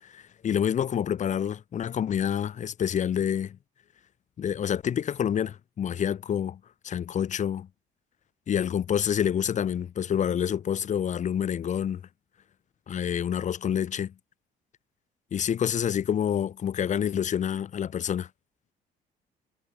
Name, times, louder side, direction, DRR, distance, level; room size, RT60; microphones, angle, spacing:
voice 1, 0.0-3.6 4.4-7.7 8.5-12.0 12.9-14.1 15.3-18.3, left 9 dB, 45° left, 1.6 m, -28 dB
cardioid pair, 110°, 17 cm